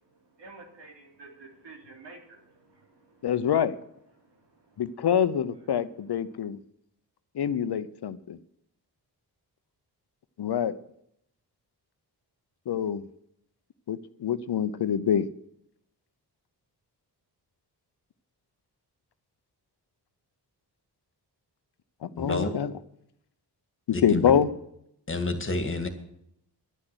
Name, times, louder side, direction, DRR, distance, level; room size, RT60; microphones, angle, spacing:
voice 1, 0.4-3.3 4.2-4.8, right 3 dB, 85° right, 1 dB, 3.3 m, -50 dB
voice 2, 3.2-3.8 4.8-6.6 7.3-8.4 10.4-10.8 12.7-13.1 13.9-15.3 22.0-22.7 23.9-24.5, left 8 dB, 70° left, 14 dB, 0.8 m, -26 dB
voice 3, 22.2-22.5 23.9-24.4 25.1-25.9, left 2 dB, 30° left, 7 dB, 2.0 m, -29 dB
11.5 x 10.0 x 8.0 m, 0.74 s
wide cardioid pair, 100°, 41 cm